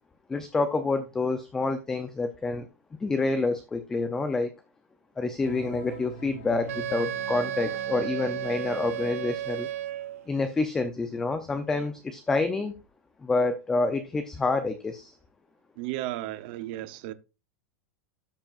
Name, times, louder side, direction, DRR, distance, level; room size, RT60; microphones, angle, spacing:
voice 1, 0.3-2.7 3.0-4.5 5.2-9.7 10.3-12.7 13.2-15.1, left 3 dB, 5° left, 0.5 m, -28 dB
sound 1, 5.4-10.6, left 2 dB, 55° left, 4.6 m, -44 dB
Wind instrument woodwind instrument, 6.7-10.2, right 12 dB, 75° right, 0.5 m, -33 dB
voice 2, 15.8-17.1, right 15 dB, 40° right, 0.8 m, -34 dB
13.0 x 7.2 x 2.5 m
supercardioid pair, 180°, 8 cm